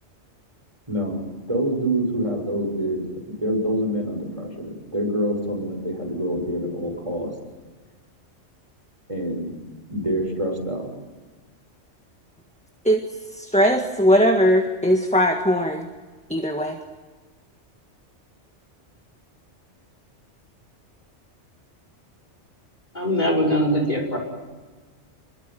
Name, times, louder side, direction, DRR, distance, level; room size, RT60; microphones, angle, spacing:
voice 1, 0.9-1.2 1.5-7.3 9.1-9.5 9.9-10.9, right 1 dB, 25° right, 1 dB, 6.6 m, -26 dB
voice 2, 13.4-15.9 16.3-16.8, equal, 5° left, 4 dB, 1.6 m, -19 dB
voice 3, 22.9-24.2, equal, 40° left, 0 dB, 5.5 m, -21 dB
29.0 x 22.5 x 9.3 m, 1.4 s
omnidirectional pair, 1.2 m